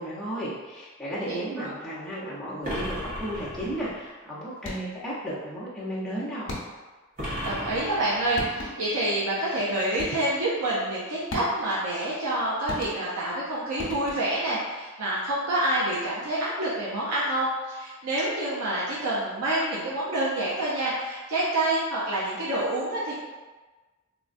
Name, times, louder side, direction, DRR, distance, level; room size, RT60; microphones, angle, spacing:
voice 1, 0.0-6.5, right 1 dB, 5° left, -10 dB, 0.6 m, -34 dB
voice 2, 1.2-1.7 7.2-23.1, right 1 dB, 80° right, -7 dB, 0.5 m, -27 dB
sound 1, 2.6-4.1 7.2-8.7, equal, 40° right, 0.8 m, -35 dB
sound 2, 4.6-5.1 6.5-7.0 8.0-8.1 8.4-9.0 10.0-10.4 11.3-11.8 12.7-13.3 13.8-14.5, left 2 dB, 65° left, 0.6 m, -37 dB
3.6 x 2.2 x 2.5 m, 1.3 s
head